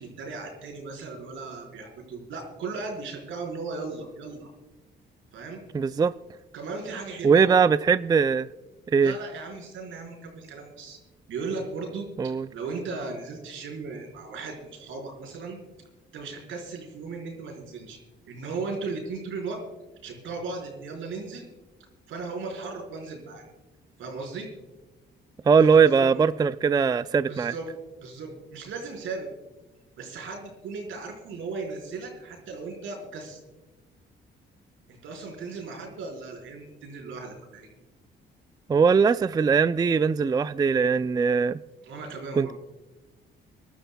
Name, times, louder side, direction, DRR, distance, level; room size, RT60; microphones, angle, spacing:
voice 1, 0.0-4.5 5.3-5.6 6.5-7.6 9.0-11.0 11.3-15.6 16.1-18.0 18.3-19.6 20.0-21.5 22.1-23.5 24.0-24.5 25.6-26.2 27.3-27.7 28.0-29.3 30.0-33.4 34.9-37.7 41.8-42.5, right 4 dB, 80° right, 4.3 m, -36 dB
voice 2, 5.7-6.1 7.2-8.5 8.9-9.1 12.2-12.5 25.5-27.5 38.7-41.6 42.3-42.5, right 5 dB, 20° right, 0.3 m, -20 dB
27.5 x 12.5 x 2.2 m
cardioid pair, 90°, 20 cm